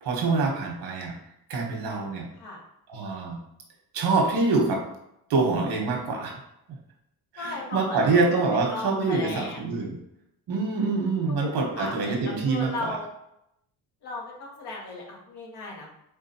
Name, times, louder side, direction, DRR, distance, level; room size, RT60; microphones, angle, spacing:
voice 1, 0.0-1.1 1.5-2.3 2.9-3.4 3.9-4.8 5.3-6.4 7.3-10.0 10.5-13.0, right 3 dB, 80° right, 1 dB, 1.3 m, -25 dB
voice 2, 7.4-8.2 8.7-9.6 11.3-13.1 14.0-15.9, left 2 dB, 85° left, -2 dB, 1.4 m, -36 dB
4.5 x 3.6 x 2.9 m, 0.79 s
cardioid pair, 85°, 39 cm